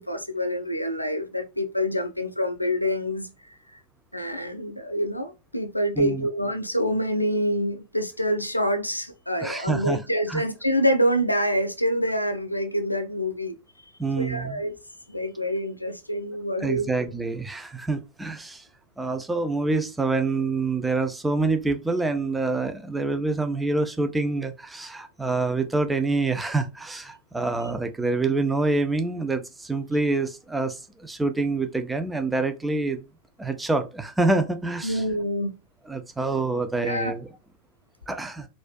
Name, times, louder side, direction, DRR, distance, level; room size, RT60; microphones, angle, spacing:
voice 1, 0.0-3.3 4.1-13.6 14.2-14.8 15.1-16.9 34.8-35.5 36.8-37.1, equal, 85° left, 0.5 m, -26 dB
voice 2, 6.0-6.3 9.4-10.0 10.3-10.4 14.0-14.6 16.6-18.6 19.0-33.0 33.4-35.0 35.9-37.3 38.1-38.5, right 3 dB, 10° right, 0.5 m, -26 dB
4.1 x 2.5 x 2.3 m
figure-of-eight pair, 90°, 0 cm